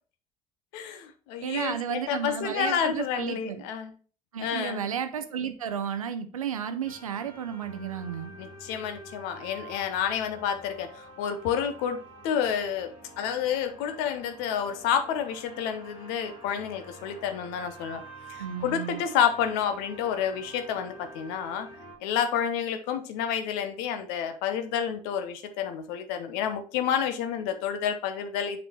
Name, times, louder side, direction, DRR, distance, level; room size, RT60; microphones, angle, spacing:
voice 1, 0.7-3.9 4.4-4.9 8.4-12.9 13.2-18.0 18.3-21.7 22.0-28.6, left 8 dB, 65° left, 9 dB, 0.9 m, -29 dB
voice 2, 1.4-3.6 4.3-8.3 18.4-19.0, right 8 dB, 80° right, 9 dB, 0.5 m, -33 dB
sound 1, 6.8-22.0, right 1 dB, 50° left, 3.3 m, -48 dB
6.9 x 5.3 x 3.0 m, 0.39 s
figure-of-eight pair, 50°, 17 cm